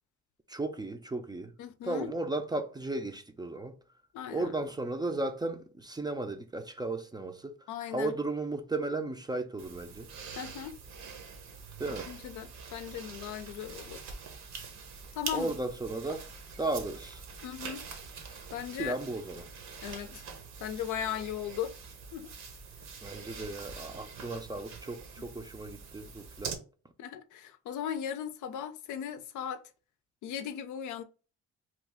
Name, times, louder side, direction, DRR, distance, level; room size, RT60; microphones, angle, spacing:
voice 1, 0.5-1.5 1.8-3.7 4.3-7.5 7.9-10.1 11.8-12.1 15.3-16.3 16.6-17.2 18.8-19.5 23.0-26.6, right 2 dB, 15° right, 0.4 m, -35 dB
voice 2, 1.6-2.1 4.1-4.5 7.7-8.2 10.4-10.8 12.1-14.0 15.1-15.6 17.4-17.9 18.5-19.0 19.8-20.2 20.6-21.8 22.1-22.3 25.2-25.3 27.0-29.6 30.2-31.0, left 9 dB, 80° left, 0.5 m, -37 dB
sound 1, 9.6-26.5, right 5 dB, 65° right, 0.9 m, -44 dB
3.0 x 2.3 x 3.5 m
cardioid pair, 90°, 30 cm